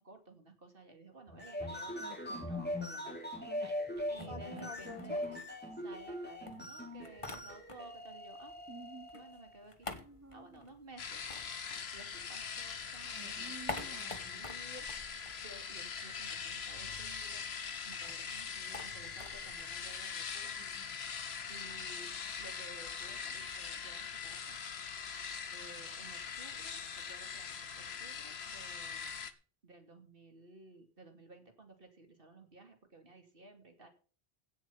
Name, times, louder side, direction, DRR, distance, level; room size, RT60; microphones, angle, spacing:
voice 1, 0.0-3.2 4.1-5.4 5.8-8.5 9.1-9.9 10.3-11.2 11.9-14.9 15.3-17.4 17.8-20.5 21.5-22.1 22.4-24.6 25.5-29.3 29.6-33.9, right 2 dB, 60° right, 2.8 m, -55 dB
sound 1, 1.3-9.5, left 1 dB, 10° left, 3.1 m, -41 dB
voice 2, 2.0-2.5 3.5-3.7 8.7-9.1 10.0-10.5 13.1-14.3 20.6-21.0, right 3 dB, 15° right, 0.9 m, -51 dB
sound 2, 3.9-6.1 6.5-8.1 8.4-12.5 12.8-16.1 16.4-16.5 16.7-22.5, left 3 dB, 30° left, 1.5 m, -48 dB
sound 3, 11.0-29.3, left 6 dB, 75° left, 1.4 m, -42 dB
16.5 x 7.7 x 5.6 m
omnidirectional pair, 1.1 m